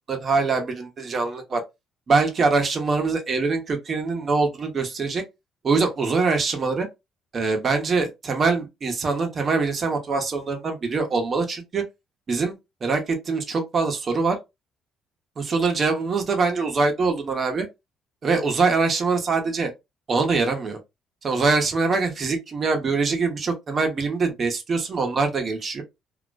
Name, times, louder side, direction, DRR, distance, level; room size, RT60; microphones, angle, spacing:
voice 1, 0.1-1.6 2.1-5.2 5.6-6.9 7.3-11.8 12.3-12.5 12.8-14.4 15.4-17.7 18.2-19.7 20.1-20.8 21.2-25.8, right 4 dB, 45° right, 0.8 m, -23 dB
2.4 x 2.1 x 2.4 m
supercardioid pair, 75°, 0 cm